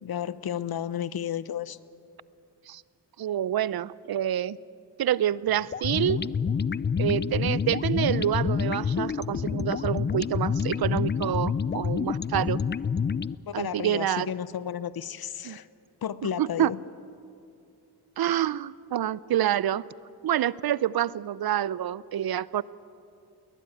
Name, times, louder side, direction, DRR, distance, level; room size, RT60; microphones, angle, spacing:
voice 1, 0.0-1.8 13.5-15.7 16.0-16.8, left 9 dB, 60° left, 16 dB, 0.9 m, -32 dB
voice 2, 3.2-4.6 5.0-6.2 7.0-12.6 13.5-14.3 15.4-15.6 16.4-16.7 18.2-19.8 20.2-22.6, right 11 dB, 60° right, 20 dB, 0.6 m, -27 dB
sound 1, 5.7-13.4, left 6 dB, 25° left, 0.5 m, -28 dB
21.0 x 20.0 x 9.2 m, 2.6 s
supercardioid pair, 50°, 41 cm